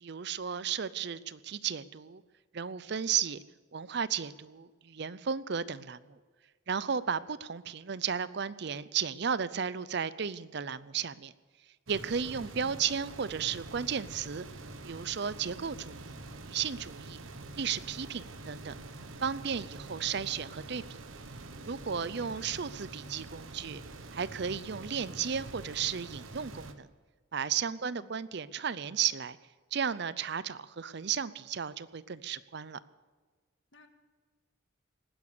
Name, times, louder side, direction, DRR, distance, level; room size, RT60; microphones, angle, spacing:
voice 1, 0.0-2.2 2.5-3.4 3.7-6.2 6.7-11.3 11.9-14.4 14.8-16.1 16.4-17.2 17.5-18.8 19.2-20.8 21.6-23.8 24.1-26.9 27.3-29.4 29.7-32.8, right 7 dB, 55° right, 17 dB, 0.6 m, -34 dB
sound 1, 11.9-26.7, right 2 dB, 85° right, 1.2 m, -46 dB
voice 2, 12.3-12.8 21.8-22.5 27.7-28.2 33.7-33.9, left 1 dB, 65° left, 6 dB, 1.8 m, -56 dB
19.0 x 10.5 x 6.7 m, 1.4 s
head